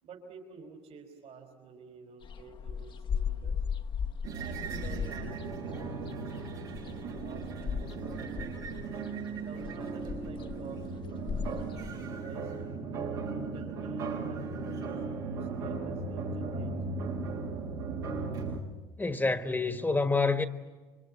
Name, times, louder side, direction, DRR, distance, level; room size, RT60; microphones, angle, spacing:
voice 1, 0.0-3.6 4.3-8.8 9.4-11.2 11.7-12.8 13.3-17.0, right 5 dB, 60° right, 4.8 m, -51 dB
sound 1, 2.2-11.9, left 7 dB, 45° left, 0.9 m, -37 dB
sound 2, 4.2-18.6, right 4 dB, 85° right, 6.2 m, -37 dB
voice 2, 19.0-20.5, left 3 dB, 15° left, 1.3 m, -27 dB
26.5 x 24.5 x 8.8 m
hypercardioid pair, 65°, 12 cm